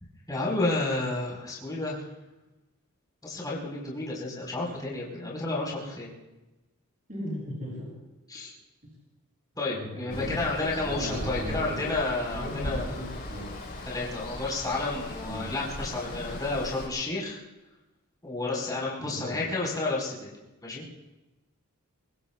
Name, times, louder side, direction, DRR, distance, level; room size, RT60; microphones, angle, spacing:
voice 1, 0.3-2.0 3.2-6.2 8.3-8.5 9.6-13.1 13.9-17.4 18.2-20.3 20.6-20.8, left 2 dB, 15° left, -5 dB, 4.7 m, -31 dB
voice 2, 7.1-7.9 9.7-11.9 12.3-13.6 15.2-15.5 19.0-19.4, equal, 35° right, -5 dB, 7.8 m, -37 dB
Water, 10.1-16.9, left 1 dB, 40° left, 4.9 m, -38 dB
24.0 x 23.5 x 2.4 m, 1.0 s
head